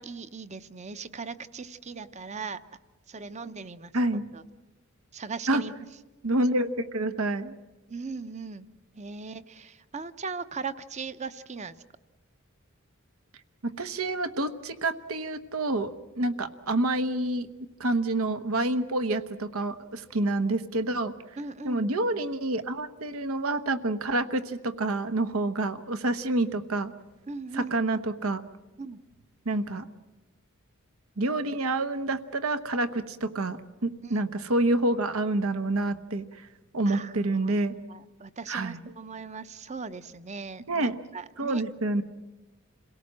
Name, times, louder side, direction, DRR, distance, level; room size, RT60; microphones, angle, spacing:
voice 1, 0.0-2.6 3.1-3.9 4.3-4.4 5.1-5.8 7.9-8.7 9.0-11.7 21.4-21.9 27.3-27.8 28.8-29.0 34.0-34.2 36.9-37.5 37.9-41.6, right 4 dB, 35° right, 13 dB, 0.7 m, -39 dB
voice 2, 3.9-4.2 5.5-5.6 6.2-7.5 13.6-17.5 17.8-21.1 21.6-26.9 27.5-28.4 29.4-29.9 31.2-36.5 36.7-37.7 38.5-38.8 40.7-41.0 41.4-42.0, right 2 dB, 85° right, 11 dB, 1.0 m, -28 dB
27.5 x 17.5 x 7.5 m, 1.2 s
head